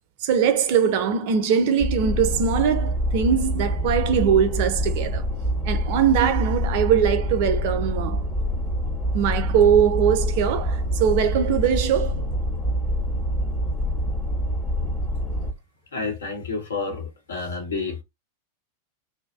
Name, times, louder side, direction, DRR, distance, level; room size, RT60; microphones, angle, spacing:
voice 1, 0.2-5.3 5.6-8.2 9.1-12.3, right 8 dB, 50° right, 0.5 m, -21 dB
sound 1, 1.8-15.5, equal, 20° left, 0.7 m, -26 dB
voice 2, 15.9-18.0, left 4 dB, 70° left, 0.9 m, -30 dB
2.5 x 2.1 x 2.3 m
figure-of-eight pair, 90°, 0 cm